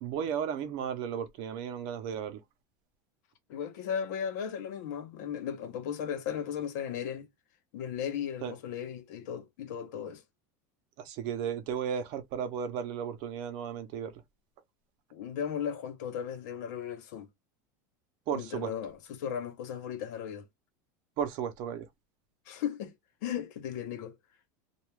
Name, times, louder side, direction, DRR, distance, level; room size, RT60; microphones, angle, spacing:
voice 1, 0.0-2.4 8.4-8.5 11.0-14.1 18.3-18.7 21.2-21.8, right 8 dB, 50° right, 0.7 m, -34 dB
voice 2, 3.5-7.3 7.7-10.2 15.1-17.3 18.3-20.5 22.5-22.9 23.2-24.1, left 8 dB, 75° left, 0.8 m, -36 dB
2.3 x 2.2 x 3.1 m
supercardioid pair, 155°, 10 cm